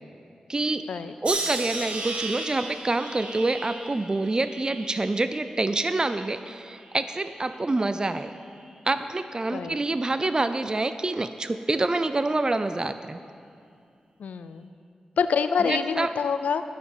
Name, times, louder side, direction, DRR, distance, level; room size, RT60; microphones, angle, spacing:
voice 1, 0.5-0.9 1.2-8.3 8.9-13.2 15.7-16.1, right 2 dB, 30° right, 10 dB, 0.4 m, -27 dB
sound 1, 1.2-6.4 6.8-7.5 8.3-8.6, right 2 dB, 55° right, 1.6 m, -36 dB
voice 2, 14.2-14.7 15.2-16.6, left 6 dB, 80° left, 11 dB, 0.4 m, -26 dB
12.5 x 5.6 x 8.0 m, 2.4 s
cardioid pair, 45°, 2 cm